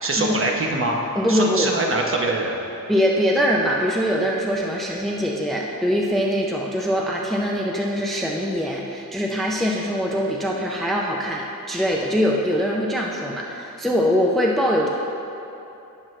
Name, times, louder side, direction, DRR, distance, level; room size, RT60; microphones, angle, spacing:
voice 1, 0.0-1.0 1.3-2.6, right 2 dB, 40° right, 0 dB, 1.1 m, -23 dB
voice 2, 1.2-1.7 2.9-14.9, equal, ahead, -2 dB, 0.6 m, -22 dB
17.0 x 6.3 x 3.2 m, 2.9 s
wide cardioid pair, 175°, 35 cm